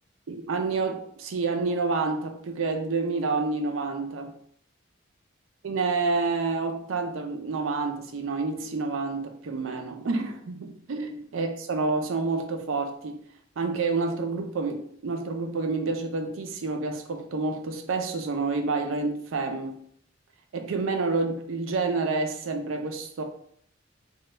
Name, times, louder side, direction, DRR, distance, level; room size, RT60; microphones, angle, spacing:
voice 1, 0.3-4.3 5.6-13.2 13.6-19.8 20.5-23.2, right 3 dB, 90° right, 0.5 m, -28 dB
3.0 x 2.2 x 3.2 m
head